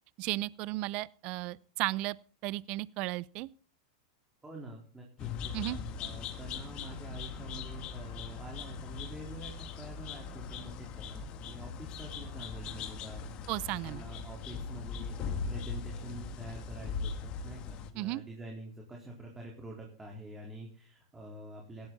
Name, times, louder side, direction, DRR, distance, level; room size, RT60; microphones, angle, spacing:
voice 1, 0.2-2.2 2.4-3.5 5.5-5.8 13.5-14.0 18.0-18.2, right 18 dB, 45° right, 0.6 m, -34 dB
voice 2, 4.4-13.5 13.8-21.9, right 1 dB, 10° right, 4.1 m, -47 dB
sound 1, 5.2-17.9, left 5 dB, 40° left, 2.0 m, -40 dB
16.5 x 12.0 x 4.1 m
hypercardioid pair, 120°, 2 cm